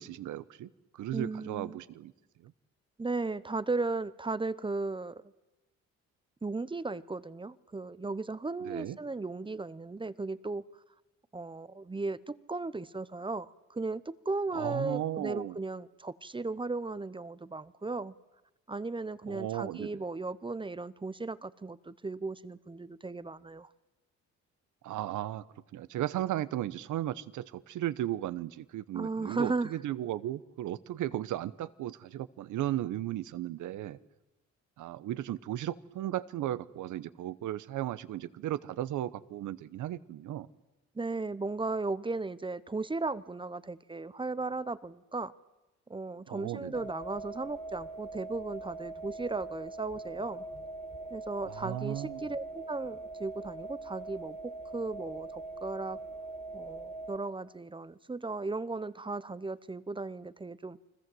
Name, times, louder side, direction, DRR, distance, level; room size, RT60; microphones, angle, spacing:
voice 1, 0.0-2.1 2.4-2.5 8.6-9.0 14.5-15.6 19.3-19.9 24.8-25.4 25.7-34.0 34.8-40.5 46.3-46.7 51.4-52.2, right 13 dB, 80° right, 1.0 m, -35 dB
voice 2, 1.1-1.8 3.0-5.3 6.4-10.6 11.3-18.1 18.7-23.7 28.9-29.7 40.9-45.3 45.9-50.5 51.1-56.0 56.5-60.8, right 3 dB, 15° right, 0.8 m, -36 dB
sound 1, 46.7-57.2, right 3 dB, 20° left, 2.9 m, -42 dB
29.5 x 21.0 x 7.8 m
cardioid pair, 90°, 30 cm